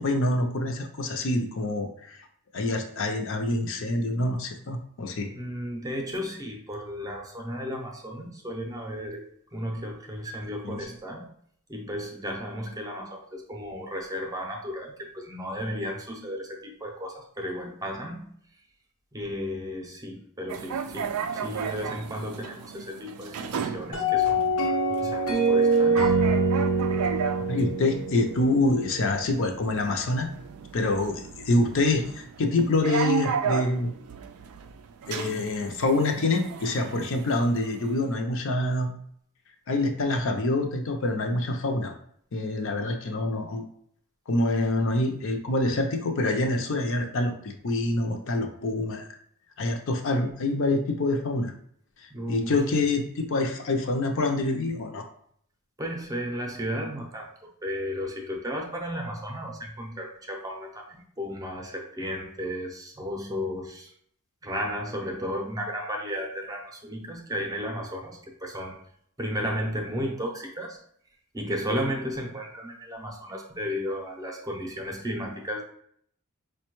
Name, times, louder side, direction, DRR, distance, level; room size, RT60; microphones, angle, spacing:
voice 1, 0.0-2.3 2.5-5.3 10.6-10.9 27.5-30.3 30.7-33.9 35.1-38.9 39.7-41.9 42.3-43.6 44.3-49.1 49.6-51.5 52.3-55.1, left 2 dB, 60° left, 4 dB, 0.5 m, -26 dB
voice 2, 5.3-11.3 11.7-18.3 19.1-26.1 52.1-52.8 55.8-63.9 64.4-68.8 69.2-70.8 71.3-75.6, equal, 15° right, 0 dB, 0.5 m, -34 dB
sound 1, 20.5-38.0, right 6 dB, 75° right, 0.3 m, -35 dB
sound 2, 23.9-29.1, right 2 dB, 85° left, 1.0 m, -24 dB
4.9 x 2.2 x 2.9 m, 0.65 s
head